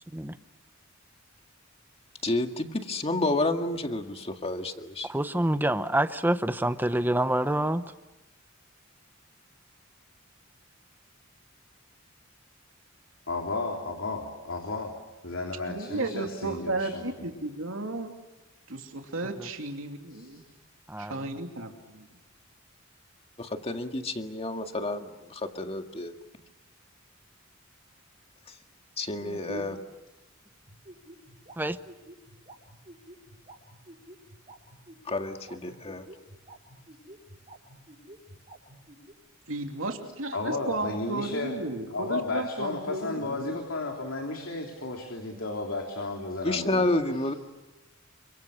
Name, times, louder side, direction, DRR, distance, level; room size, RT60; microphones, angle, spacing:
voice 1, 2.2-5.1 23.4-26.1 29.0-29.8 35.1-36.0 46.4-47.3, left 2 dB, 30° left, 5 dB, 1.9 m, -30 dB
voice 2, 5.0-7.8 20.9-21.2 31.6-31.8, right 1 dB, 10° right, 11 dB, 0.9 m, -26 dB
voice 3, 13.3-14.9 15.2-17.1 20.1-20.3 40.3-41.5 41.9-46.8, left 2 dB, 75° left, 2 dB, 3.3 m, -33 dB
voice 4, 15.7-18.1 18.7-20.5 21.0-22.2 29.2-29.7 39.5-43.6, right 2 dB, 85° right, 3 dB, 2.9 m, -34 dB
sound 1, 30.7-39.1, right 1 dB, 35° right, 6.6 m, -49 dB
29.5 x 25.5 x 6.6 m, 1.0 s
head